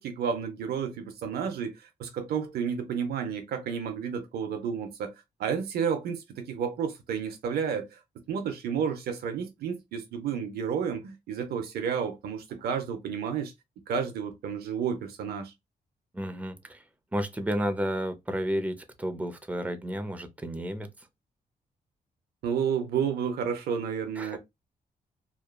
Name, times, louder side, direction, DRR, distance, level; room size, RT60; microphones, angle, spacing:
voice 1, 0.0-5.1 5.4-8.0 8.3-13.5 13.9-15.5 22.4-24.4, right 7 dB, 85° right, 0.6 m, -31 dB
voice 2, 16.1-16.8 17.1-20.9 24.2-24.4, equal, 10° right, 0.6 m, -32 dB
2.8 x 2.2 x 2.2 m
cardioid pair, 70°, 16 cm